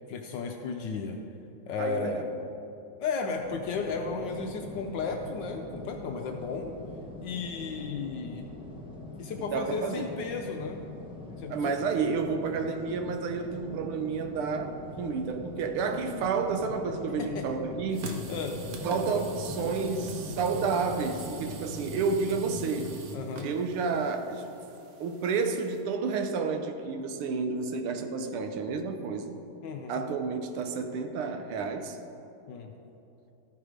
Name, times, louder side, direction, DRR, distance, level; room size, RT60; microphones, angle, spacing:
voice 1, 0.1-1.2 1.7-2.2 3.0-6.7 7.2-8.5 9.2-10.8 11.4-11.7 17.2-17.5 18.3-18.6 23.1-23.5 29.6-30.0 32.5-32.7, left 4 dB, 75° left, 4 dB, 1.1 m, -34 dB
voice 2, 1.8-2.3 9.4-10.1 11.5-18.1 18.8-22.9 23.4-24.5 25.0-29.4 29.9-32.0, right 5 dB, 85° right, 6 dB, 1.6 m, -30 dB
sound 1, 3.4-23.0, left 1 dB, 5° right, 0.4 m, -43 dB
sound 2, 17.9-25.8, right 1 dB, 60° right, 1.0 m, -42 dB
13.5 x 4.7 x 5.0 m, 2.8 s
omnidirectional pair, 2.3 m